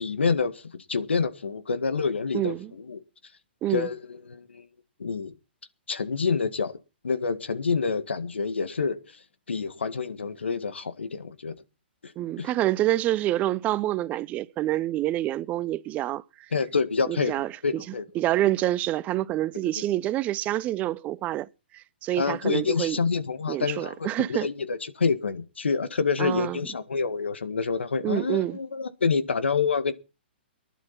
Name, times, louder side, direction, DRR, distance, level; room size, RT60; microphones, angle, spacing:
voice 1, 0.0-3.0 3.7-4.7 5.0-5.3 5.9-6.8 7.0-9.0 9.5-11.5 12.0-12.1 12.4-12.5 16.5-18.0 19.6-19.7 22.2-29.9, left 5 dB, 85° left, 1.9 m, -27 dB
voice 2, 2.3-2.7 3.6-3.9 12.2-16.2 17.1-21.5 21.7-23.0 23.5-24.5 26.2-26.6 28.0-28.6, right 14 dB, 25° right, 0.8 m, -27 dB
19.5 x 11.5 x 4.3 m
hypercardioid pair, 135°, 6 cm